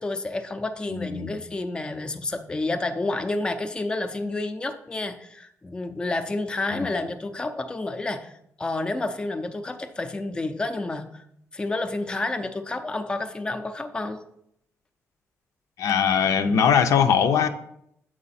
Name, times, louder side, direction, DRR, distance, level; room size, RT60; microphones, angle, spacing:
voice 1, 0.0-8.3 8.6-11.2 11.5-14.2, left 2 dB, 15° left, 6 dB, 0.5 m, -30 dB
voice 2, 0.9-1.3 6.7-6.9 15.8-17.5, left 7 dB, 80° left, 7 dB, 0.6 m, -21 dB
7.5 x 4.8 x 4.1 m, 0.75 s
wide cardioid pair, 150°, 5 cm